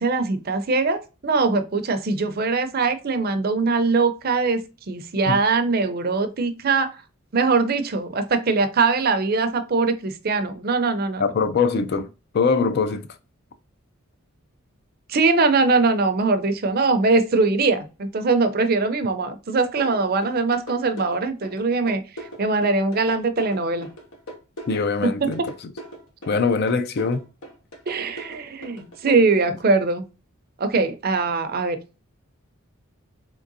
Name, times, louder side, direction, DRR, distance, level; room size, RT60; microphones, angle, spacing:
voice 1, 0.0-7.0 7.3-11.3 15.1-22.0 22.4-23.9 25.0-25.5 27.9-30.0 30.6-32.0, right 3 dB, 45° right, 0.5 m, -22 dB
voice 2, 11.2-12.1 12.3-13.0 24.7-25.4 26.3-27.2, left 4 dB, 50° left, 0.4 m, -22 dB
sound 1, 19.8-29.2, right 1 dB, 85° left, 1.1 m, -39 dB
3.7 x 3.3 x 2.6 m
head